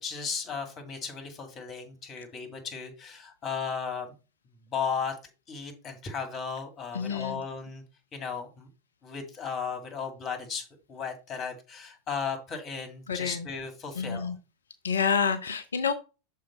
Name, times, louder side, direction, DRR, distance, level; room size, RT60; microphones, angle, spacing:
voice 1, 0.0-4.1 4.7-5.2 5.5-7.8 8.1-8.7 9.0-14.3, left 6 dB, 30° left, 6 dB, 2.0 m, -35 dB
voice 2, 6.9-7.4 13.1-13.5 14.0-14.4 14.8-15.9, left 6 dB, 70° left, 12 dB, 0.6 m, -28 dB
6.4 x 4.6 x 4.3 m, 0.30 s
figure-of-eight pair, 90°, 0 cm